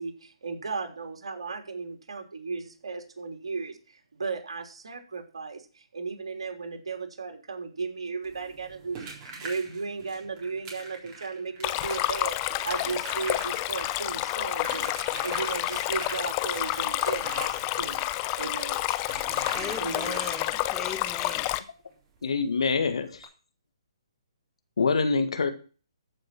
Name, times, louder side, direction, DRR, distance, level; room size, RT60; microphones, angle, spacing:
voice 1, 0.0-18.0 18.3-18.9 19.8-20.4, right 4 dB, 75° right, 4 dB, 3.3 m, -35 dB
sound 1, 8.2-20.7 22.2-22.3 22.6-22.7 23.1-23.2, right 3 dB, 25° right, 3.7 m, -43 dB
Stream, 11.6-21.6, left 16 dB, 25° left, 0.7 m, -29 dB
voice 2, 19.5-21.5, left 5 dB, 10° left, 2 dB, 1.7 m, -38 dB
voice 3, 22.2-23.2 24.8-25.5, left 4 dB, 75° left, 9 dB, 1.9 m, -25 dB
14.0 x 5.4 x 6.0 m, 0.38 s
hypercardioid pair, 145°, 3 cm